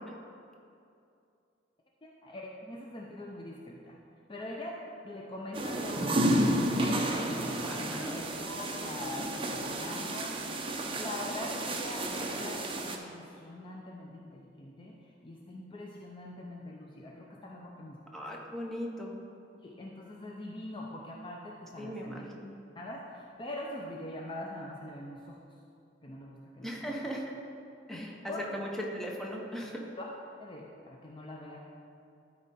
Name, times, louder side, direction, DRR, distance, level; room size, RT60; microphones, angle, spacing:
voice 1, 2.0-4.0 4.3-4.8 5.0-10.6 10.9-18.0 19.5-22.3 22.8-25.4 26.0-27.1 27.9-28.4 30.0-30.1 30.4-31.6, left 1 dB, 25° left, -1 dB, 0.5 m, -43 dB
sound 1, 5.5-13.0, right 1 dB, 30° right, 0.6 m, -31 dB
voice 2, 7.6-8.2 18.1-19.1 21.8-22.5 26.6-27.3 27.9-28.1 28.5-28.7 28.9-29.8, equal, ahead, -2 dB, 0.9 m, -39 dB
12.5 x 4.2 x 4.2 m, 2.6 s
head